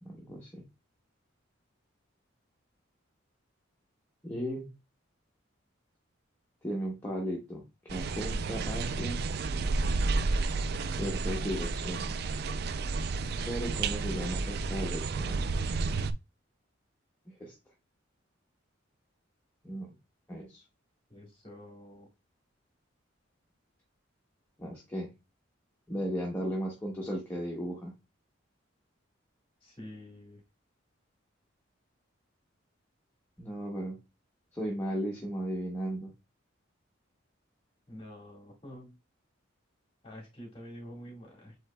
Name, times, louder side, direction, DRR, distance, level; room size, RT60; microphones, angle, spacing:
voice 1, 0.0-0.6 4.2-4.7 6.6-9.2 10.9-12.3 13.5-15.4 17.3-17.6 19.6-19.9 20.3-20.6 24.6-25.1 25.9-27.9 33.4-34.0 34.5-36.1, equal, 10° left, -3 dB, 0.9 m, -36 dB
sound 1, 7.9-16.1, right 3 dB, 50° right, 0.3 m, -31 dB
voice 2, 21.1-22.1 29.6-30.4 37.9-38.9 40.0-41.6, equal, 25° left, -1 dB, 1.8 m, -47 dB
7.8 x 2.9 x 2.2 m, 0.26 s
head